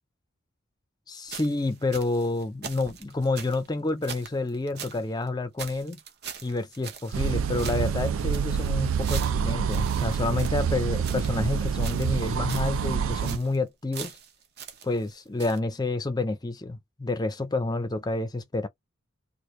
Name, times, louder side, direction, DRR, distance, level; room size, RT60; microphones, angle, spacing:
voice 1, 1.1-6.0 6.4-14.1 14.8-18.7, left 2 dB, 20° left, 0.5 m, -29 dB
sound 1, 1.3-5.0 5.3-5.4 5.6-7.3 7.6-11.4 11.8-12.2 12.5-12.8 13.1-13.6 13.9-15.1 15.4-15.6, right 7 dB, 50° right, 0.8 m, -42 dB
sound 2, 7.1-13.4, right 7 dB, 80° right, 0.4 m, -27 dB
3.2 x 2.4 x 3.1 m
head